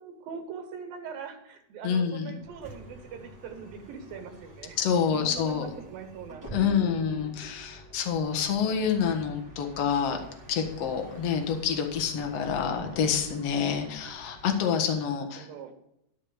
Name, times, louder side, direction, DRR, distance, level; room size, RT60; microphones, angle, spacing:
voice 1, 0.0-4.8 5.1-7.3 14.6-14.8 15.4-15.8, right 5 dB, 80° right, 4 dB, 3.2 m, -42 dB
voice 2, 1.8-2.4 4.8-5.7 6.5-10.2 10.5-15.5, left 7 dB, 50° left, 4 dB, 2.1 m, -27 dB
Bus, 2.4-14.8, right 1 dB, 5° right, 2.8 m, -47 dB
13.0 x 5.5 x 7.8 m, 0.79 s
omnidirectional pair, 4.1 m